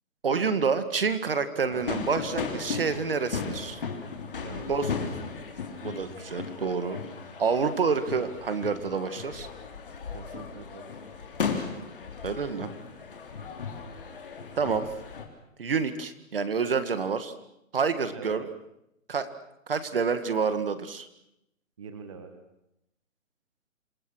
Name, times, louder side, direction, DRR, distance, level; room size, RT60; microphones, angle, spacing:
voice 1, 0.2-3.8 4.7-4.9 5.8-7.0 7.4-9.5 12.2-12.7 14.6-14.9 15.6-17.3 17.7-18.5 19.1-19.3 19.7-21.1, right 5 dB, 40° right, 11 dB, 2.0 m, -28 dB
sound 1, 1.7-15.3, left 5 dB, 40° left, 3.6 m, -36 dB
voice 2, 4.4-4.8 10.1-10.9 18.1-18.4 21.8-22.3, right 5 dB, 25° right, 6 dB, 1.6 m, -43 dB
27.5 x 25.5 x 6.3 m, 0.83 s
hypercardioid pair, 180°, 41 cm